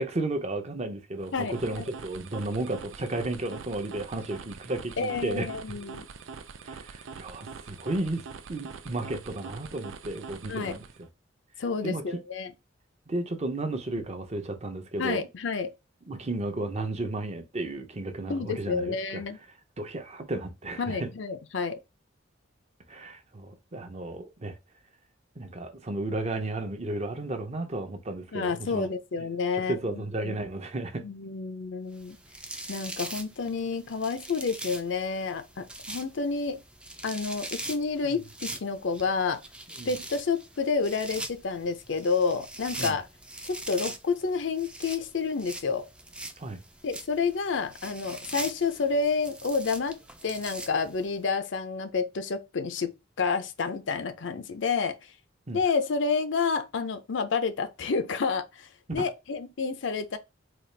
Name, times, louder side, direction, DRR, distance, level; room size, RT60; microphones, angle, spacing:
voice 1, 0.0-5.5 6.6-8.2 8.5-10.8 11.8-12.0 13.1-15.3 16.1-19.2 19.8-21.1 22.9-24.5 25.4-28.9 29.7-31.0 38.0-38.2 39.8-39.9 42.8-42.9 46.4-46.6 55.5-55.6 59.0-59.1, right 2 dB, 35° right, 0.8 m, -33 dB
sound 1, 1.2-11.1, right 5 dB, 90° right, 0.5 m, -44 dB
voice 2, 1.3-1.9 5.0-6.1 10.5-10.8 11.6-12.5 15.0-15.7 18.3-19.4 20.8-21.8 28.3-30.4 31.0-32.2 32.7-36.6 37.0-39.4 39.9-43.1 43.5-45.9 46.8-52.9 53.2-55.0 55.5-60.2, left 4 dB, 70° left, 0.5 m, -29 dB
sound 2, 32.0-51.1, right 1 dB, 5° right, 0.4 m, -42 dB
4.1 x 2.4 x 3.2 m
head